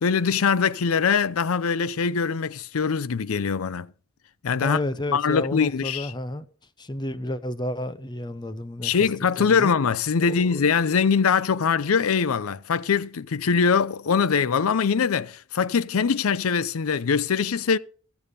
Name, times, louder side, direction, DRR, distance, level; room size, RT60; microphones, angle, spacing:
voice 1, 0.0-3.9 4.4-4.8 5.1-6.1 8.8-17.8, left 6 dB, 75° left, 0.5 m, -22 dB
voice 2, 4.6-6.5 6.8-8.9 9.4-9.8 10.3-10.7, left 1 dB, 20° left, 0.8 m, -31 dB
14.5 x 7.1 x 6.6 m
head